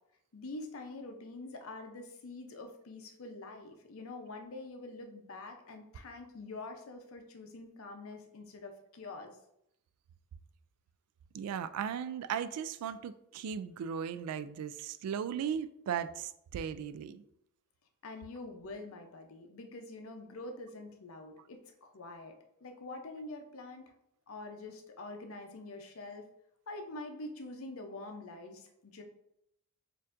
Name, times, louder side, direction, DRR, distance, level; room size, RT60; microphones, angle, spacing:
voice 1, 0.3-9.4 18.0-22.3 22.6-23.9 24.3-26.2 26.7-29.0, left 2 dB, 70° left, 4 dB, 0.6 m, -45 dB
voice 2, 11.3-17.2, right 8 dB, 90° right, 14 dB, 0.3 m, -37 dB
6.5 x 2.6 x 2.5 m, 0.78 s
head